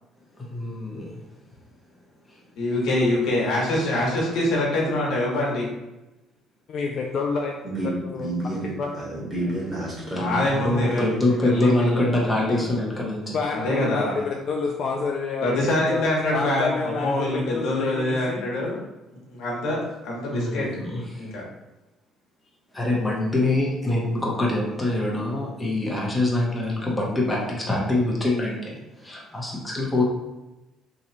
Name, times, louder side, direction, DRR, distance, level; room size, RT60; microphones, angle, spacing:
voice 1, 0.4-1.2 10.1-13.4 20.3-21.3 22.7-30.0, left 2 dB, 10° left, -3 dB, 0.8 m, -25 dB
voice 2, 2.6-5.7 10.1-12.7 13.5-14.1 15.4-18.8 19.1-20.7 21.2-21.4, left 1 dB, 70° left, -3 dB, 1.1 m, -25 dB
voice 3, 6.7-7.6 7.8-8.3 8.6-9.0 9.4-9.5 13.3-18.5, left 4 dB, 45° left, 1 dB, 0.3 m, -29 dB
voice 4, 7.6-10.8, right 1 dB, 20° right, -5 dB, 1.4 m, -30 dB
3.0 x 2.3 x 4.0 m, 1.0 s
cardioid pair, 140°, 0 cm